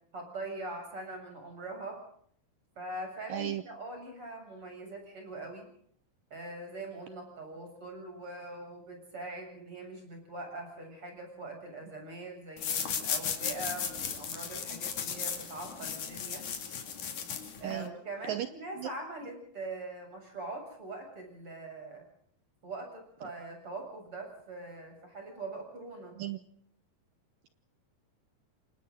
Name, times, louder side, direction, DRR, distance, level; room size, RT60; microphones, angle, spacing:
voice 1, 0.1-2.0 2.8-5.7 6.3-16.5 17.6-22.0 22.6-26.2, right 2 dB, 30° right, 3 dB, 8.2 m, -42 dB
voice 2, 3.3-3.6 17.6-17.9 18.3-18.5 18.8-18.9 26.2-26.4, right 12 dB, 70° right, 11 dB, 2.3 m, -34 dB
sound 1, 12.6-17.9, left 7 dB, 55° left, 3.8 m, -36 dB
29.0 x 25.5 x 3.9 m, 0.64 s
omnidirectional pair, 4.6 m